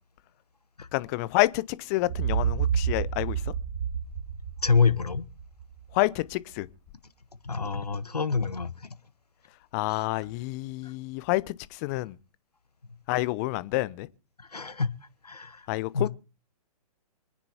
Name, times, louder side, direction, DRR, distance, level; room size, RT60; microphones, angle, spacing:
voice 1, 0.9-3.4 5.9-6.7 9.7-12.2 13.1-14.1 15.7-16.1, left 20 dB, 25° left, 0.5 m, -28 dB
sound 1, 2.0-5.9, right 8 dB, 35° right, 4.9 m, -29 dB
voice 2, 4.6-5.2 7.4-8.7 14.5-15.0 15.2-15.6 15.9-16.1, left 5 dB, 80° left, 1.0 m, -26 dB
25.5 x 9.9 x 2.8 m
figure-of-eight pair, 120°, 20 cm